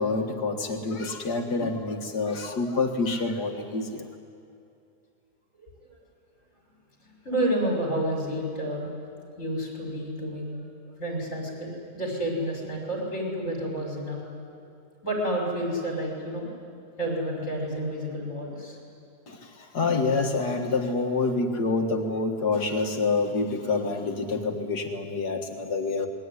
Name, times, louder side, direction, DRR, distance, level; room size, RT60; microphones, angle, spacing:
voice 1, 0.0-4.1 19.3-26.1, left 3 dB, 80° left, 3 dB, 2.3 m, -27 dB
voice 2, 7.0-8.9 9.4-10.5 10.9-14.2 15.0-16.5 17.0-18.8, right 1 dB, 50° left, -1 dB, 6.5 m, -30 dB
27.0 x 21.5 x 9.8 m, 2.6 s
omnidirectional pair, 1.7 m